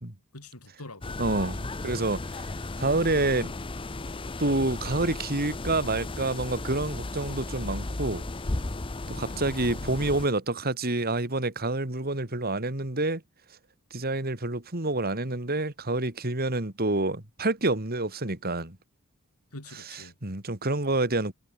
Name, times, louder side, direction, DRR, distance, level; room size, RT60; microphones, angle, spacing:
voice 1, 0.3-1.2 9.1-10.0 19.5-20.1, left 1 dB, 85° left, 8.0 m, -46 dB
sound 1, 1.0-10.3, left 2 dB, 25° left, 0.7 m, -35 dB
voice 2, 1.2-2.2 2.8-3.5 4.4-8.2 9.1-13.2 13.9-18.8 19.9-21.3, right 2 dB, 45° right, 3.1 m, -28 dB
head